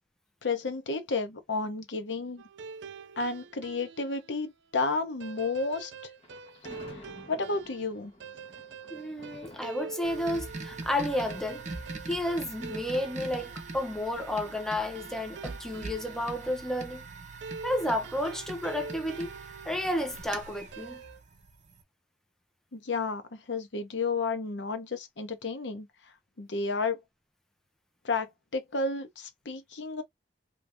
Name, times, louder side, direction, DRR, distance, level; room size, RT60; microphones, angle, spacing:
voice 1, 0.4-2.4 3.2-5.9 6.9-8.1 22.7-25.9 26.4-27.0 28.0-30.0, left 3 dB, 80° left, 0.8 m, -32 dB
sound 1, 2.4-4.2 5.2-16.4 17.4-20.3 20.7-21.2, right 5 dB, 85° right, 0.4 m, -45 dB
Thunder, 6.2-13.4, left 1 dB, 35° left, 1.0 m, -53 dB
voice 2, 8.9-11.6 12.1-17.0 17.6-19.3 19.6-21.0, left 1 dB, 5° left, 0.6 m, -31 dB
sound 2, 10.0-21.8, right 3 dB, 40° right, 0.8 m, -42 dB
2.9 x 2.7 x 3.3 m
head